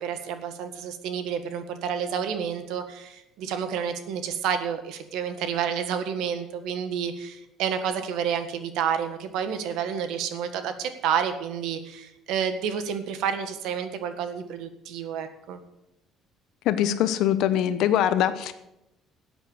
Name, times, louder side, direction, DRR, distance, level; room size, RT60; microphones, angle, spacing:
voice 1, 0.0-15.6, right 8 dB, 75° right, 9 dB, 1.6 m, -30 dB
voice 2, 16.7-18.5, left 11 dB, 65° left, 11 dB, 0.9 m, -23 dB
12.5 x 8.1 x 8.0 m, 0.89 s
cardioid pair, 165°, 0 cm